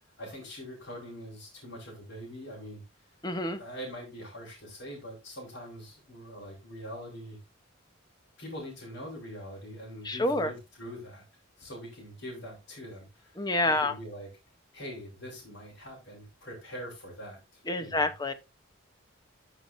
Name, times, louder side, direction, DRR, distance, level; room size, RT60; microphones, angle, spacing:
voice 1, 0.2-3.1 3.5-7.4 8.4-11.2 11.6-14.3 14.7-18.1, equal, 60° left, 4.4 m, -43 dB
voice 2, 3.2-3.6 10.0-10.5 13.4-13.9 17.7-18.3, left 2 dB, 20° left, 0.8 m, -28 dB
13.5 x 5.9 x 2.6 m
head